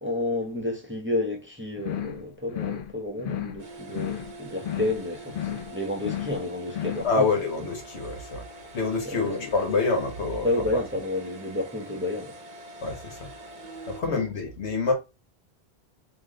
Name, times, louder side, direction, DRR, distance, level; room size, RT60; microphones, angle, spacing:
voice 1, 0.0-7.3 9.0-9.3 10.4-12.4 14.0-14.2, left 2 dB, 10° right, 1.0 m, -30 dB
sound 1, 1.8-2.2 2.5-2.9 3.2-3.6 3.9-4.3 4.6-5.0 5.3-5.7 6.0-6.4 6.7-7.1, left 11 dB, 60° left, 0.6 m, -33 dB
sound 2, 3.6-14.0, right 2 dB, 50° right, 0.9 m, -45 dB
voice 2, 7.0-10.5 12.8-13.3 13.9-14.9, left 4 dB, 90° left, 1.5 m, -27 dB
3.4 x 3.0 x 3.8 m
omnidirectional pair, 1.1 m